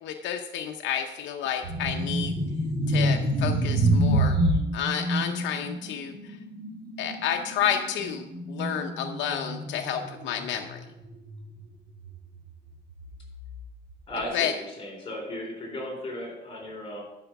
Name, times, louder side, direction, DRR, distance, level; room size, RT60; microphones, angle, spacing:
voice 1, 0.0-2.3 2.9-4.4 4.7-6.4 7.0-10.8 14.3-14.5, left 9 dB, 85° left, 4 dB, 0.8 m, -30 dB
sound 1, 1.6-11.6 11.9-12.2 12.9-13.9, right 1 dB, 25° right, 1.9 m, -27 dB
voice 2, 14.1-17.0, left 1 dB, 30° left, -1 dB, 3.8 m, -35 dB
11.5 x 5.0 x 5.9 m, 0.97 s
cardioid pair, 165°, 19 cm